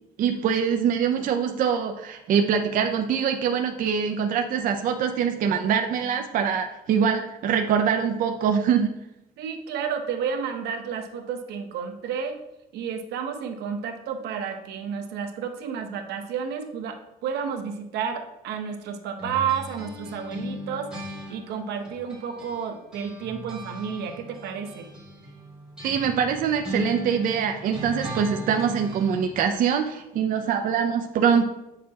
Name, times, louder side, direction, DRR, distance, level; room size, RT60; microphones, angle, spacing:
voice 1, 0.2-9.0 25.8-31.4, right 7 dB, 55° right, 4 dB, 0.5 m, -24 dB
voice 2, 9.4-12.4 12.7-24.9, right 7 dB, 85° right, 5 dB, 0.9 m, -31 dB
sound 1, 19.2-22.7 22.9-29.3, equal, 5° right, 2.9 m, -38 dB
8.5 x 6.6 x 2.8 m, 0.89 s
cardioid pair, 150°, 17 cm